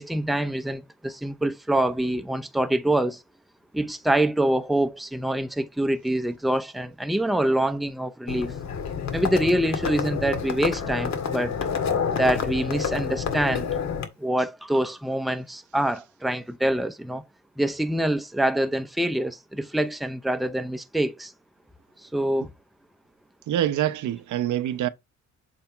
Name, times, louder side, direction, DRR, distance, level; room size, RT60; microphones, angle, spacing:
voice 1, 0.0-3.2 3.7-8.5 9.1-11.6 12.1-13.7 14.2-17.2 17.6-21.3 22.0-22.5, right 1 dB, ahead, 0.7 m, -25 dB
Livestock farm animals working animals, 8.3-14.1, left 6 dB, 65° left, 1.8 m, -28 dB
voice 2, 23.5-24.9, right 12 dB, 75° right, 0.8 m, -25 dB
7.4 x 3.5 x 4.5 m
cardioid pair, 90°, 30 cm